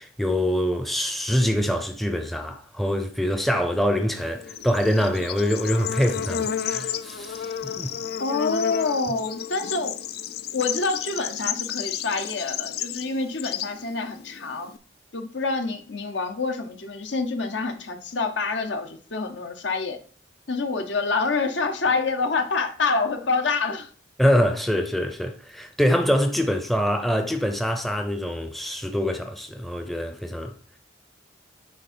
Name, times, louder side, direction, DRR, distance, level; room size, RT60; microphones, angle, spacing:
voice 1, 0.0-7.9 24.2-30.5, equal, ahead, 0.6 m, -24 dB
Bird / Insect, 4.2-14.8, left 9 dB, 50° left, 0.4 m, -32 dB
voice 2, 8.2-10.0 10.5-14.7 15.1-20.0 20.5-23.9, left 4 dB, 70° left, 0.9 m, -27 dB
9.5 x 3.6 x 4.4 m
head